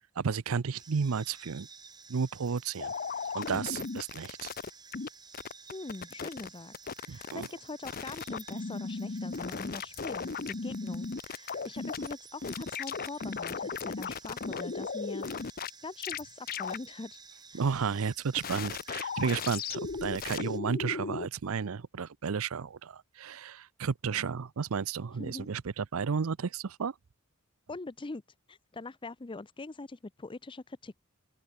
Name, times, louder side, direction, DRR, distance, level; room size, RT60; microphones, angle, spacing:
voice 1, 0.2-1.7 2.1-2.9 3.3-4.5 7.1-7.5 17.5-26.9, right 6 dB, 75° right, 0.6 m, -32 dB
sound 1, 0.7-20.6, right 5 dB, 20° right, 3.3 m, -53 dB
sound 2, 2.8-5.1 5.3-6.5 6.7-7.5 7.9-12.1 12.4-15.7 16.0-16.2 16.5-16.8 18.3-21.3, left 5 dB, 45° left, 0.8 m, -36 dB
voice 2, 5.7-6.7 7.1-15.3 15.8-17.2 17.5-17.6 25.2-25.5 27.7-28.2 28.5-31.0, left 3 dB, 25° left, 0.6 m, -42 dB
head